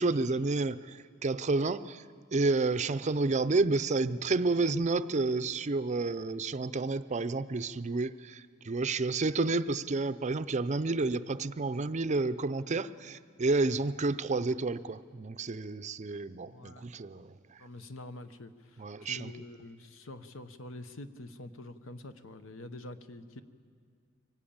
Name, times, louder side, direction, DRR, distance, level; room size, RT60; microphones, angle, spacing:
voice 1, 0.0-2.0 2.3-17.3 18.8-19.3, right 3 dB, 35° right, 13 dB, 0.5 m, -30 dB
voice 2, 16.4-16.9 17.6-23.4, left 1 dB, 75° left, 10 dB, 1.0 m, -46 dB
24.5 x 18.0 x 8.8 m, 2.1 s
head